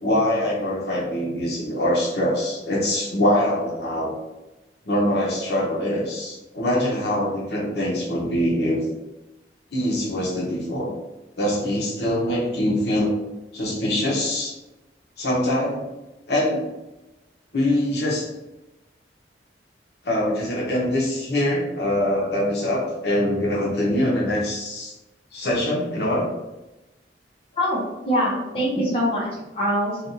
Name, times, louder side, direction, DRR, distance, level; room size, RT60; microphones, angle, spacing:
voice 1, 0.0-4.2 4.8-8.8 9.7-10.9 11.4-13.1 13.5-14.5 15.2-15.8 16.3-16.7 17.5-18.3 20.0-24.9 25.3-26.3, left 1 dB, 65° left, -3 dB, 0.8 m, -23 dB
voice 2, 27.6-30.0, equal, 30° left, -6 dB, 0.7 m, -24 dB
3.3 x 2.3 x 2.6 m, 1.0 s
head